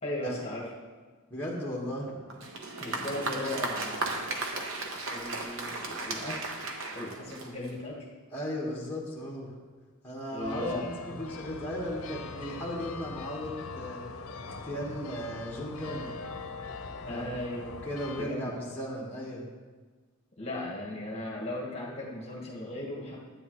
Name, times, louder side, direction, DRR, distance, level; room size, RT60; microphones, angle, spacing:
voice 1, 0.0-0.7 2.8-4.2 5.0-6.5 6.9-8.1 10.3-10.9 17.1-17.7 18.2-18.6 20.4-23.2, left 1 dB, 30° left, -3 dB, 1.5 m, -37 dB
voice 2, 1.3-2.2 8.3-9.5 10.0-14.2 14.5-16.2 17.1-17.3 17.6-19.4, equal, 10° left, -5 dB, 1.5 m, -36 dB
Applause, 2.3-7.9, right 2 dB, 60° right, 1.0 m, -35 dB
sound 1, 10.4-18.2, left 3 dB, 70° left, 0.7 m, -41 dB
12.0 x 8.7 x 3.1 m, 1.4 s
head